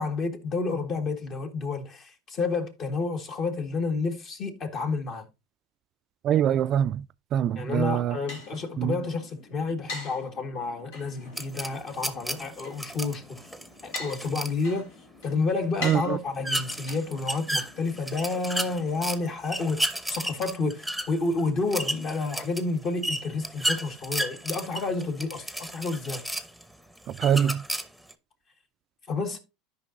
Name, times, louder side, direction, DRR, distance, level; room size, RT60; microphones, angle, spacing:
voice 1, 0.0-5.3 7.6-13.2 13.8-14.9 15.2-26.2 29.1-29.4, left 3 dB, 40° left, 1.8 m, -30 dB
voice 2, 6.2-7.0 7.3-8.2 8.8-9.0 15.8-16.2 27.1-27.6, right 9 dB, 45° right, 0.3 m, -24 dB
sound 1, 7.7-19.3, left 3 dB, 80° left, 2.7 m, -44 dB
sound 2, 11.4-14.6 16.4-19.2 19.4-26.6 27.1-28.1, right 1 dB, ahead, 0.9 m, -33 dB
12.5 x 5.3 x 2.6 m
hypercardioid pair, 95°, 0 cm